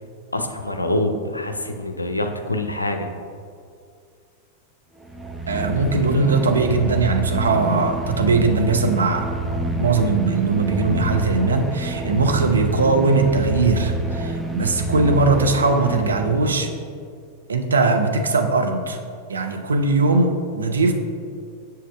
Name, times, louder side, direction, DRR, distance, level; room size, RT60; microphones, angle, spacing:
voice 1, 0.3-3.1, left 1 dB, 85° left, 6 dB, 0.4 m, -25 dB
sound 1, 5.0-16.7, right 1 dB, ahead, 0.5 m, -27 dB
voice 2, 5.5-9.3 9.8-16.7 17.5-19.0 19.3-20.9, right 3 dB, 75° right, 4 dB, 0.5 m, -20 dB
7.4 x 6.5 x 2.2 m, 2.3 s
figure-of-eight pair, 90°, 0 cm